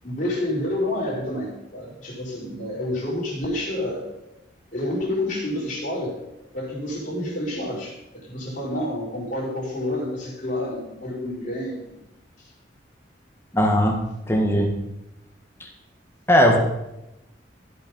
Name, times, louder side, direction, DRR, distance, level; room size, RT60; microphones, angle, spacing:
voice 1, 0.0-4.1 4.7-6.2 6.5-12.0, left 1 dB, 45° left, -6 dB, 4.7 m, -29 dB
voice 2, 13.5-14.0 14.3-14.7 15.6-15.7 16.3-16.6, equal, 15° left, 2 dB, 1.4 m, -18 dB
15.0 x 6.1 x 5.4 m, 0.92 s
head